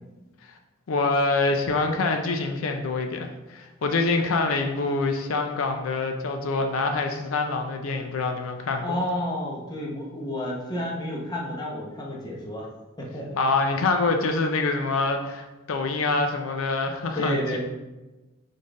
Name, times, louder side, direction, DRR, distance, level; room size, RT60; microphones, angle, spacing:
voice 1, 0.9-9.0 13.4-17.6, left 3 dB, 80° left, 5 dB, 0.5 m, -25 dB
voice 2, 8.8-12.7 13.0-13.4 17.1-17.6, equal, 20° left, -3 dB, 0.8 m, -30 dB
4.2 x 3.4 x 3.6 m, 1.1 s
head